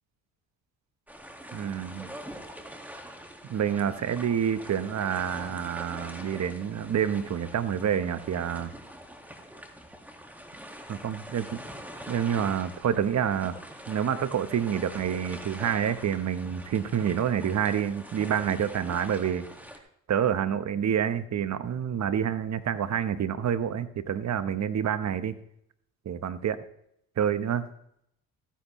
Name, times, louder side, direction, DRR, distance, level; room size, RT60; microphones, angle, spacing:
sound 1, 1.1-19.8, equal, 5° right, 1.9 m, -44 dB
voice 1, 1.5-2.1 3.5-8.7 10.9-11.6 12.1-13.5 13.9-19.4 20.1-25.3 26.0-26.6 27.2-27.6, right 8 dB, 45° right, 12 dB, 1.0 m, -28 dB
15.5 x 10.0 x 3.1 m, 0.74 s
supercardioid pair, 70°, 37 cm